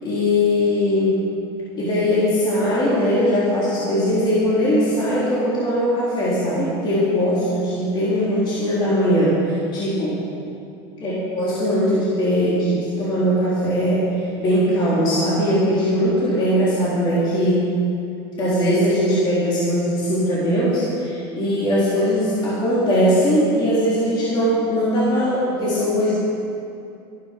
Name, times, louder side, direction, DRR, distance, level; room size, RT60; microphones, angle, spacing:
voice 1, 0.0-1.2 1.7-10.2 11.0-14.1 14.4-17.7 18.4-26.1, equal, 35° left, -8 dB, 3.8 m, -20 dB
15.0 x 12.0 x 5.4 m, 2.6 s
supercardioid pair, 140°, 14 cm